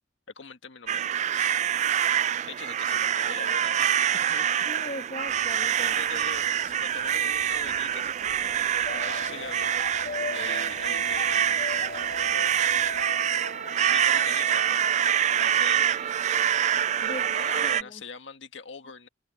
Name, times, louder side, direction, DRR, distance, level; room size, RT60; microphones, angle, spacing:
voice 1, 0.4-1.6 2.5-4.5 5.8-9.7 10.3-11.7 12.2-12.9 13.8-14.8 15.3-16.2 17.0-19.1, left 5 dB, 80° left, 1.8 m, -43 dB
sound 1, 0.9-17.8, right 9 dB, 40° right, 0.3 m, -26 dB
voice 2, 4.6-6.0 17.0-17.3 17.5-18.0, left 1 dB, 35° left, 1.3 m, -39 dB
Rain, 5.3-13.0, right 5 dB, 55° right, 5.3 m, -54 dB
sound 2, 8.9-15.2, left 3 dB, 55° left, 0.9 m, -38 dB
head